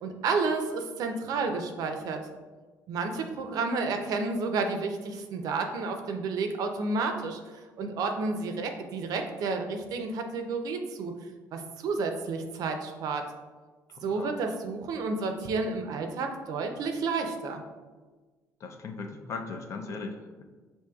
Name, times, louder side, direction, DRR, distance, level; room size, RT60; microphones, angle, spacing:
voice 1, 0.0-2.2 2.9-11.1 11.5-13.2 14.0-17.6, right 4 dB, 65° right, 5 dB, 0.5 m, -31 dB
voice 2, 13.9-14.4 18.6-20.4, left 4 dB, 50° left, 5 dB, 0.4 m, -38 dB
5.9 x 2.7 x 2.3 m, 1.3 s
cardioid pair, 125°, 7 cm